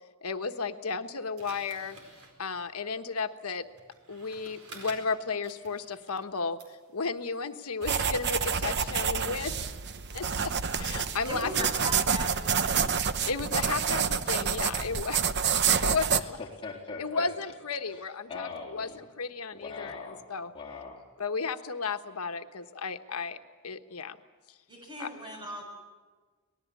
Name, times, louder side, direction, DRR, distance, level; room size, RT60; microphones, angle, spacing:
voice 1, 0.2-2.0 2.4-3.6 4.1-6.6 6.9-9.6 10.1-11.7 13.3-15.2 15.8-16.4 17.0-18.9 19.2-20.0 20.3-20.5 21.2-23.4 23.6-24.2 25.0-25.1, left 4 dB, 80° left, 8 dB, 1.3 m, -33 dB
sound 1, 1.4-6.3 6.6-12.3, right 2 dB, 70° right, 4.5 m, -54 dB
sound 2, 7.8-16.2, right 6 dB, 50° right, 0.9 m, -28 dB
voice 2, 11.3-13.0 24.7-25.6, equal, 20° right, 1 dB, 7.2 m, -38 dB
voice 3, 16.2-17.3 17.8-19.0 19.5-20.3 20.5-21.0, left 4 dB, 25° left, -3 dB, 3.6 m, -41 dB
24.5 x 19.5 x 8.5 m, 1.4 s
head